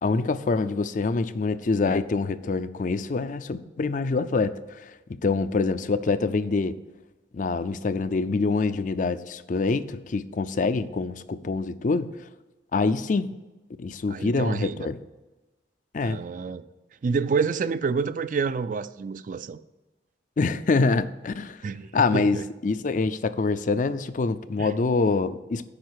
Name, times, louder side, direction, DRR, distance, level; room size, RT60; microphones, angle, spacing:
voice 1, 0.0-4.8 5.1-6.7 7.3-12.1 12.7-13.3 13.8-15.0 15.9-16.2 20.4-21.6 21.9-25.7, left 3 dB, 45° left, 13 dB, 0.4 m, -25 dB
voice 2, 14.1-14.9 16.0-16.6 17.0-19.6 21.6-22.4 24.6-24.7, right 5 dB, 45° right, 14 dB, 0.3 m, -28 dB
8.7 x 5.6 x 6.4 m, 1.1 s
head